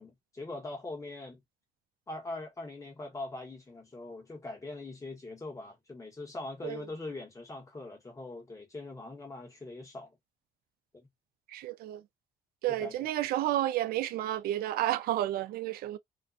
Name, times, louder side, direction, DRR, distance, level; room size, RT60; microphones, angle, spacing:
voice 1, 0.0-1.4 2.1-10.2 10.9-11.1 12.7-13.0, left 2 dB, 20° left, 1.1 m, -42 dB
voice 2, 11.5-12.0 12.6-16.0, right 13 dB, 65° right, 0.4 m, -31 dB
2.4 x 2.2 x 2.5 m
cardioid pair, 110°, 17 cm